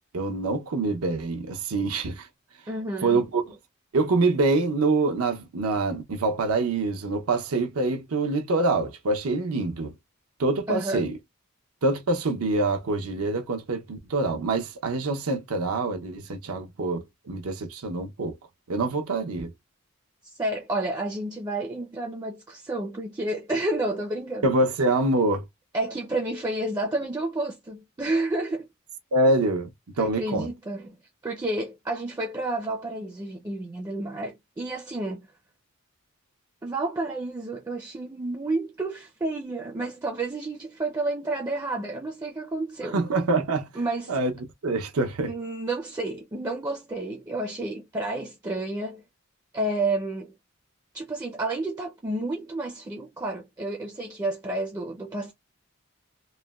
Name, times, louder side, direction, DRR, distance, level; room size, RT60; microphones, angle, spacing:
voice 1, 0.1-2.3 3.0-3.4 3.9-9.9 10.4-11.2 11.8-18.4 18.7-19.5 24.4-25.4 29.1-29.7 30.0-30.5 42.9-43.7 44.1-44.3 44.6-45.3, right 2 dB, 85° right, 0.6 m, -25 dB
voice 2, 2.7-3.2 10.7-11.0 20.2-24.5 25.7-28.7 30.0-30.9 31.2-35.2 36.6-43.0 43.8-44.2 45.3-49.0 49.5-50.3 50.9-55.3, right 2 dB, 15° right, 0.4 m, -30 dB
3.1 x 2.1 x 2.2 m
head